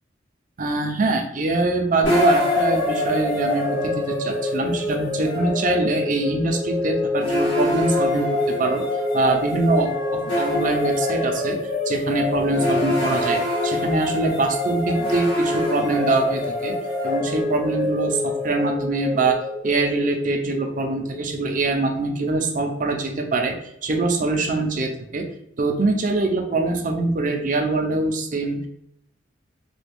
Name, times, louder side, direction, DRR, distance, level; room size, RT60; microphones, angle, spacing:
voice 1, 0.6-8.8 9.1-11.6 11.9-16.8 17.0-19.4 19.6-23.5 23.8-25.3 25.6-28.7, right 3 dB, 45° right, 4 dB, 0.5 m, -23 dB
sound 1, 2.0-21.2, left 2 dB, 75° left, 1.1 m, -25 dB
3.4 x 2.3 x 3.3 m, 0.77 s
head